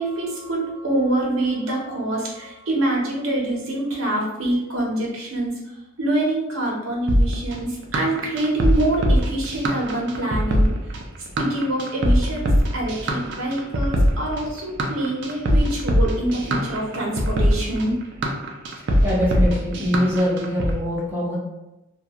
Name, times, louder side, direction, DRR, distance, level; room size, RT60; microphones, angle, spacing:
voice 1, 0.0-5.6 6.0-10.7 11.4-17.9, right 1 dB, 80° right, -3 dB, 0.8 m, -25 dB
sound 1, 7.1-20.7, equal, 60° right, 0.4 m, -21 dB
voice 2, 19.0-21.4, equal, 10° right, -5 dB, 0.7 m, -23 dB
2.4 x 2.3 x 2.9 m, 0.93 s
head